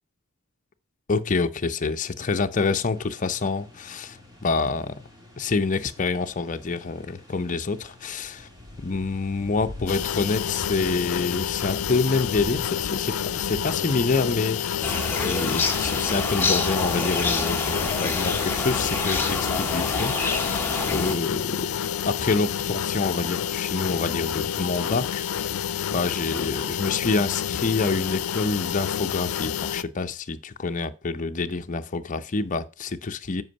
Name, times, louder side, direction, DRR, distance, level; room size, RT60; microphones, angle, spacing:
voice 1, 1.1-4.9 5.4-8.5 8.8-21.7 22.0-25.5 25.9-33.4, left 4 dB, 40° left, 0.6 m, -27 dB
sound 1, 2.9-16.8, left 1 dB, 20° right, 2.0 m, -44 dB
sound 2, 9.9-29.8, left 9 dB, 90° left, 0.5 m, -29 dB
sound 3, 14.8-21.2, left 3 dB, 10° left, 1.0 m, -27 dB
8.1 x 5.3 x 5.2 m
head